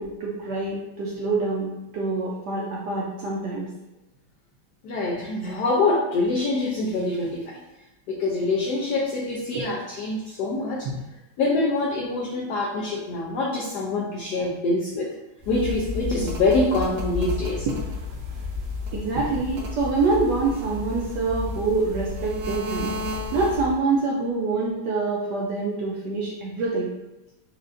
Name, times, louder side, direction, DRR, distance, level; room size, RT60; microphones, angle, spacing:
voice 1, 0.0-3.7 9.5-9.6 17.7-17.8 18.9-22.9 23.3-26.9, right 3 dB, 70° right, -3 dB, 1.0 m, -26 dB
voice 2, 4.8-7.6 8.1-10.9 11.4-15.1 15.5-17.7, left 2 dB, 75° left, -4 dB, 0.9 m, -25 dB
sound 1, 15.4-23.8, left 3 dB, 90° right, 1.5 m, -32 dB
4.3 x 2.4 x 2.5 m, 0.98 s
omnidirectional pair, 2.3 m